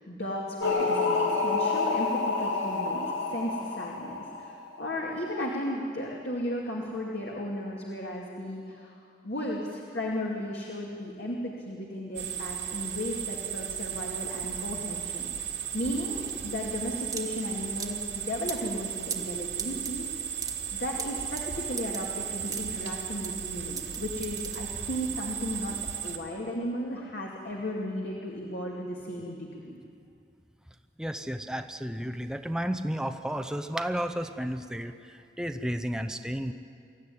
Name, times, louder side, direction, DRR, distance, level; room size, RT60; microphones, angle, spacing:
voice 1, 0.0-4.5 4.8-9.0 9.2-15.3 15.7-20.1 20.7-25.8 26.0-29.8, left 1 dB, 60° left, -2 dB, 2.4 m, -35 dB
sound 1, 0.6-4.8, left 3 dB, 85° left, 3.2 m, -28 dB
sound 2, 12.1-26.2, right 9 dB, 75° right, 2.3 m, -35 dB
sound 3, 15.6-25.1, right 5 dB, 20° right, 1.6 m, -41 dB
voice 2, 31.0-36.5, equal, 5° right, 7 dB, 0.7 m, -32 dB
24.5 x 14.5 x 10.0 m, 2.4 s
head